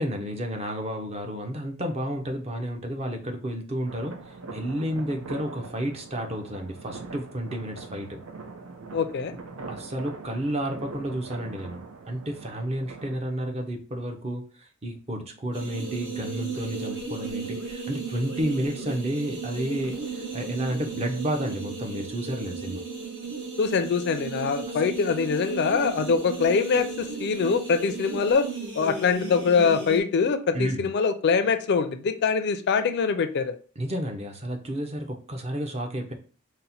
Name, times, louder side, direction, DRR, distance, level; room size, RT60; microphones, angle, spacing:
voice 1, 0.0-8.2 9.7-22.8 30.5-30.9 33.8-36.1, right 1 dB, 30° right, 3 dB, 0.6 m, -31 dB
sound 1, 3.9-13.2, right 3 dB, 90° right, 0.6 m, -42 dB
voice 2, 8.9-9.3 23.6-28.5 28.7-33.5, left 5 dB, 55° left, 10 dB, 0.4 m, -24 dB
sound 2, 15.5-30.0, right 4 dB, 60° right, 1.3 m, -35 dB
4.1 x 2.1 x 4.1 m, 0.39 s
head